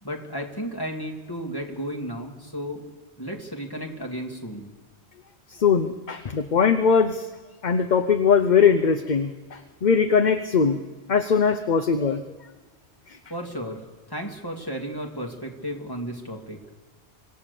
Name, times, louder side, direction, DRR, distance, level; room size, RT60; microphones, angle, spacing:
voice 1, 0.0-2.8 3.2-4.7 13.3-16.6, equal, 20° left, 1 dB, 2.5 m, -33 dB
voice 2, 5.5-7.3 7.6-10.8 11.1-12.2 13.1-13.2, left 6 dB, 50° left, 9 dB, 0.8 m, -21 dB
25.0 x 16.5 x 6.9 m, 1.4 s
omnidirectional pair, 1.1 m